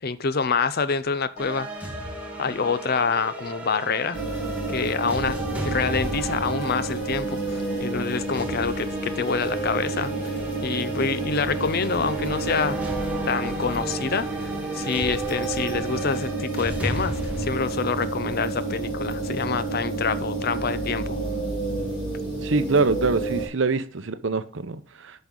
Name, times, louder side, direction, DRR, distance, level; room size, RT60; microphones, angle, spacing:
voice 1, 0.0-1.9 2.4-4.2 4.7-10.1 10.6-12.9 13.3-21.2, left 5 dB, 45° left, 0.6 m, -27 dB
sound 1, 1.4-19.0, right 1 dB, 5° right, 1.4 m, -35 dB
sound 2, 4.1-23.5, right 2 dB, 25° left, 3.6 m, -30 dB
Musical instrument, 14.3-22.2, left 1 dB, 75° left, 3.3 m, -53 dB
voice 2, 22.4-25.2, right 3 dB, 60° right, 0.7 m, -24 dB
10.5 x 5.3 x 3.8 m
head